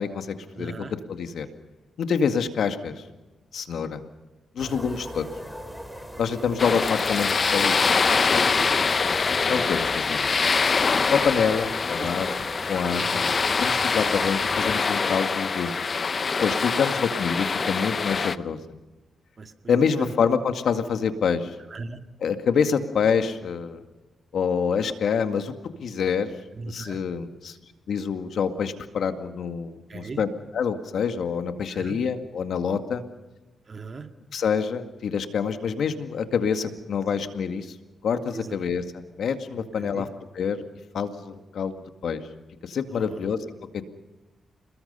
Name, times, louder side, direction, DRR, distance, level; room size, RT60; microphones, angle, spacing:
voice 1, 0.0-1.5 2.0-3.0 3.5-4.0 4.6-5.3 6.2-7.9 8.3-8.4 9.4-10.3 11.1-13.3 13.6-15.8 16.4-18.6 19.7-21.5 22.2-23.8 24.3-25.5 25.8-26.3 26.6-27.6 27.9-33.0 34.3-37.7 38.0-40.1 40.3-40.6 40.9-42.2 42.6-43.4 43.7-43.9, left 6 dB, 75° left, 7 dB, 2.0 m, -26 dB
voice 2, 0.5-0.9 4.6-4.8 8.4-8.8 12.0-12.1 13.0-13.3 19.4-20.1 21.7-22.0 26.6-27.0 29.9-30.2 31.7-32.0 33.7-34.1 38.3-38.6 39.5-40.0 42.9-43.1, right 4 dB, 45° right, 6 dB, 2.0 m, -38 dB
sound 1, 4.6-14.8, equal, 5° left, 4.4 m, -38 dB
sound 2, 6.6-18.4, left 5 dB, 45° left, 0.8 m, -24 dB
28.5 x 21.0 x 5.6 m, 1.1 s
cardioid pair, 80°, 0 cm